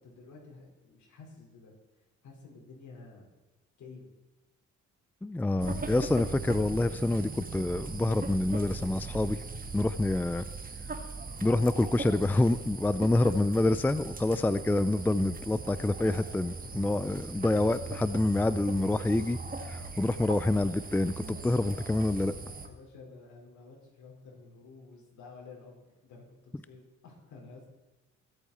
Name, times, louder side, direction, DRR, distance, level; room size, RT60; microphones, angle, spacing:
voice 1, 0.0-1.7 2.2-3.3 3.8-4.1 22.4-27.7, left 4 dB, 70° left, -1 dB, 4.9 m, -51 dB
voice 2, 5.2-9.4 9.7-10.4 11.4-19.4 19.6-22.3, left 2 dB, 5° left, 14 dB, 0.4 m, -27 dB
sound 1, 5.6-22.7, right 4 dB, 30° right, 1.5 m, -40 dB
22.0 x 8.4 x 4.3 m, 1.0 s
cardioid pair, 90°, 30 cm